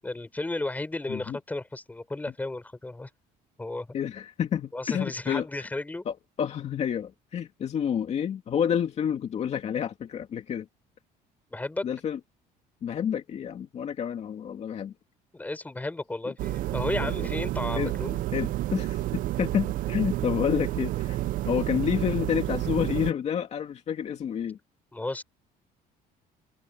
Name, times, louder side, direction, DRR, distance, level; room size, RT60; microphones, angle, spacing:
voice 1, 0.0-3.1 3.6-3.9 4.7-6.0 11.5-11.9 15.3-18.2 24.9-25.2, left 2 dB, 10° left, 4.3 m, -33 dB
voice 2, 3.9-5.5 6.1-10.7 11.8-12.2 12.8-14.9 17.0-17.1 17.8-17.9 18.3-21.2 21.4-24.6, left 8 dB, 45° left, 2.4 m, -29 dB
sound 1, 16.4-23.1, right 15 dB, 60° right, 0.5 m, -30 dB
open air
cardioid pair, 140°, 16 cm